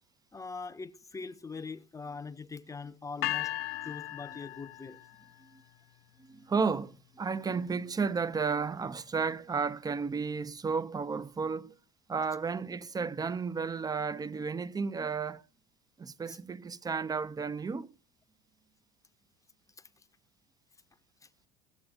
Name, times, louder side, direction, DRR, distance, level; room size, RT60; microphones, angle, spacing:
voice 1, 0.3-3.5 3.8-5.0 16.3-16.4 19.8-19.9 21.2-21.3, left 4 dB, 15° left, 1.0 m, -42 dB
sound 1, 3.2-5.3, left 15 dB, 60° left, 0.8 m, -36 dB
voice 2, 6.2-11.8 12.1-15.4 16.0-17.9, right 5 dB, 20° right, 0.8 m, -33 dB
17.0 x 7.8 x 5.2 m
hypercardioid pair, 70°, 20 cm